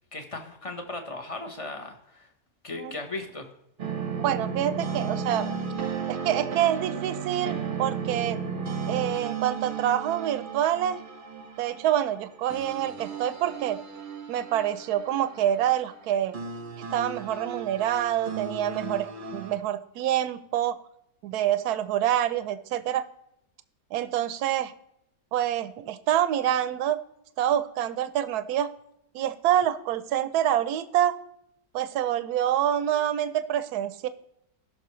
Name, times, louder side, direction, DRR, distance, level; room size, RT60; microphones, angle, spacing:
voice 1, 0.1-2.3 2.6-3.5, left 2 dB, 25° left, 4 dB, 0.8 m, -37 dB
sound 1, 3.8-19.6, right 6 dB, 40° right, 0.8 m, -35 dB
voice 2, 4.2-5.5 6.1-8.4 8.9-11.0 11.6-13.8 14.3-16.4 16.9-19.1 19.3-20.8 21.2-23.0 23.9-24.7 25.3-27.0 27.4-28.7 29.1-31.2 31.7-34.1, right 11 dB, 70° right, 13 dB, 1.1 m, -26 dB
17.5 x 6.0 x 3.1 m, 0.78 s
omnidirectional pair, 1.8 m